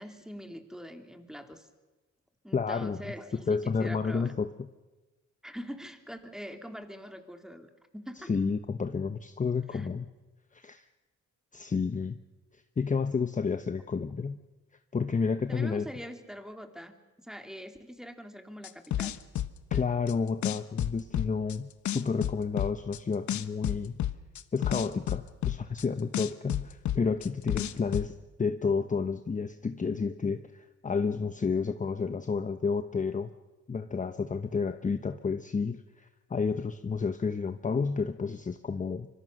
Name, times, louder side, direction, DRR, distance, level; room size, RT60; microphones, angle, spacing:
voice 1, 0.0-1.7 2.4-4.3 5.4-8.3 9.7-9.9 15.5-16.9 17.2-19.2, equal, ahead, 6 dB, 2.9 m, -43 dB
voice 2, 2.5-3.0 3.5-4.5 8.2-10.1 10.5-10.8 11.5-12.2 12.8-14.4 14.9-15.9 19.7-24.0 24.5-33.3 33.7-39.1, left 5 dB, 25° left, 9 dB, 1.0 m, -30 dB
sound 1, 18.6-20.1 20.4-21.6 21.9-23.0 23.3-25.8 26.1-28.1, left 12 dB, 70° left, 1.2 m, -30 dB
25.5 x 24.0 x 6.5 m, 1.2 s
cardioid pair, 90°, 30 cm